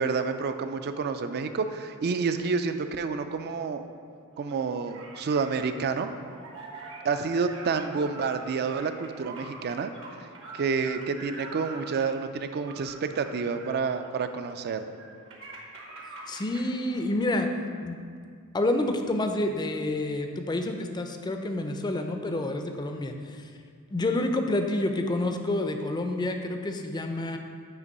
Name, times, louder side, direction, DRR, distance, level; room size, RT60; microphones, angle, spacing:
voice 1, 0.0-3.8 4.4-6.1 7.0-9.9 10.5-14.8, right 5 dB, 45° right, 9 dB, 0.3 m, -29 dB
sound 1, 4.3-17.6, right 3 dB, 65° right, 1.0 m, -45 dB
voice 2, 16.3-17.5 17.8-18.0 18.5-23.4 23.9-27.4, left 1 dB, 20° left, 5 dB, 0.4 m, -28 dB
8.1 x 3.0 x 5.2 m, 2.1 s
head